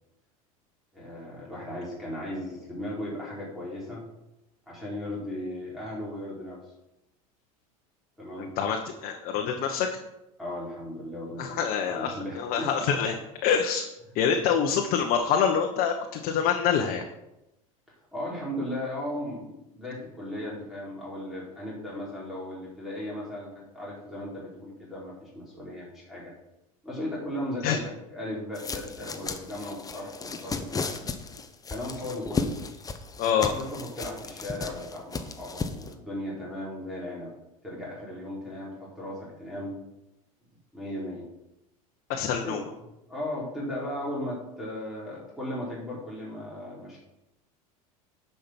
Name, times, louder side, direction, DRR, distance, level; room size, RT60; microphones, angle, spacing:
voice 1, 0.9-4.0 4.7-6.6 8.2-8.5 10.4-11.6 11.8-12.9 18.1-26.3 26.8-31.1 31.7-32.5 33.3-37.3 37.6-39.7 40.7-41.2 42.4-42.7 43.1-47.0, left 1 dB, ahead, -6 dB, 4.3 m, -36 dB
voice 2, 8.4-9.9 11.4-13.1 13.4-13.8 14.1-17.0 27.6-27.8 33.2-33.5 42.1-42.6, left 7 dB, 55° left, 3 dB, 1.1 m, -26 dB
sound 1, 28.5-35.9, left 4 dB, 20° left, 1.0 m, -35 dB
10.0 x 5.8 x 6.0 m, 0.90 s
supercardioid pair, 100°, 18 cm